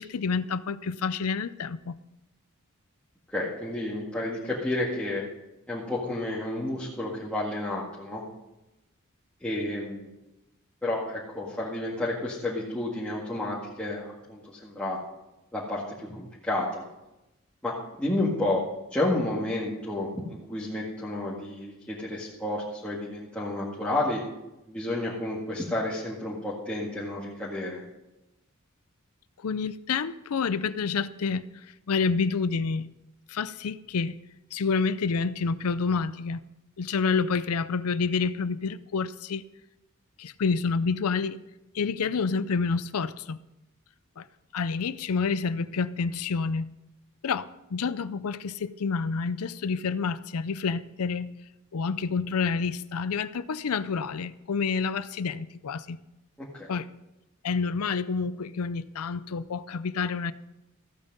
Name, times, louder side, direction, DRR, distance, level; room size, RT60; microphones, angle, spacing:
voice 1, 0.0-2.0 29.4-31.4 31.9-32.9 33.3-34.2 34.5-36.4 36.8-39.4 40.2-41.4 41.7-43.4 44.2-44.3 44.5-46.7 47.2-51.3 51.7-56.0 56.7-56.9 57.4-60.3, left 5 dB, 90° left, 15 dB, 0.5 m, -28 dB
voice 2, 3.3-5.3 5.7-8.2 9.4-10.1 10.8-15.0 15.5-16.8 17.6-18.6 18.9-24.2 24.7-27.8 56.4-56.7, left 1 dB, 5° left, -8 dB, 1.9 m, -31 dB
14.5 x 8.8 x 5.3 m, 0.95 s
head